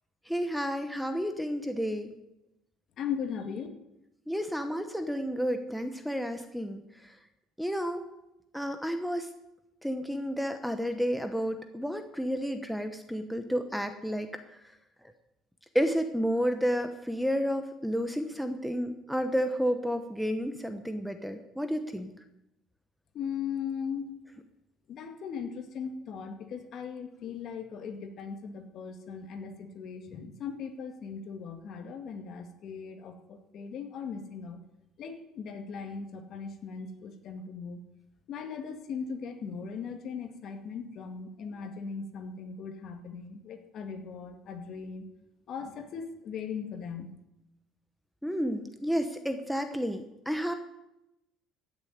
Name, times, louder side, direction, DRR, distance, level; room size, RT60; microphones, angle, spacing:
voice 1, 0.3-2.1 4.3-6.8 7.6-8.0 8.5-9.3 9.8-14.3 15.7-22.1 48.2-50.6, equal, ahead, 6 dB, 1.0 m, -31 dB
voice 2, 3.0-3.7 23.1-24.2 24.9-34.6 35.0-37.8 38.3-45.1 45.5-47.1, left 6 dB, 50° left, 6 dB, 2.2 m, -38 dB
15.0 x 7.0 x 9.6 m, 0.88 s
cardioid pair, 125°, 0 cm